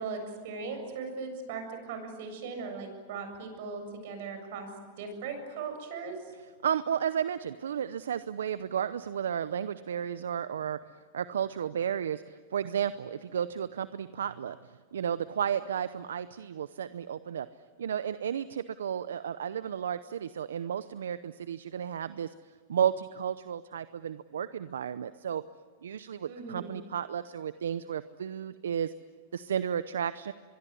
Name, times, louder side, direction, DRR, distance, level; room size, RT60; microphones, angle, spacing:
voice 1, 0.0-4.7 5.0-6.2 26.3-26.7, right 4 dB, 65° right, 6 dB, 7.4 m, -38 dB
voice 2, 6.3-10.8 11.1-17.5 17.8-22.3 22.7-25.4 25.8-28.9 29.3-30.3, right 8 dB, 85° right, 14 dB, 0.7 m, -33 dB
24.5 x 23.0 x 9.7 m, 1.5 s
hypercardioid pair, 115°, 0 cm